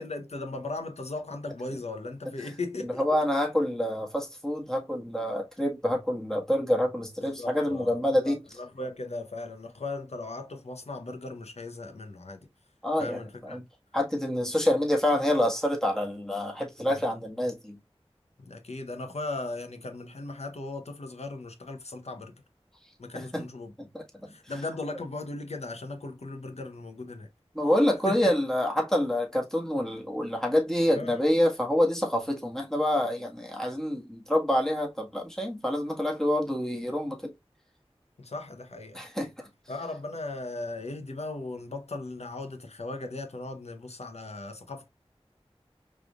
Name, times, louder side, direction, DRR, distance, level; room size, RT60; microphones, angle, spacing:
voice 1, 0.0-3.2 7.2-12.4 13.0-13.6 16.8-17.0 18.4-22.4 23.0-23.7 24.3-27.3 28.1-28.3 30.9-31.2 36.6-36.8 38.2-39.0 39.7-44.9, left 2 dB, 85° left, 0.9 m, -37 dB
voice 2, 2.8-8.4 12.8-13.6 13.9-17.8 23.1-23.5 23.8-24.3 27.5-37.3 38.9-39.5, left 1 dB, 5° left, 1.6 m, -27 dB
5.0 x 3.3 x 2.4 m
wide cardioid pair, 45°, 11 cm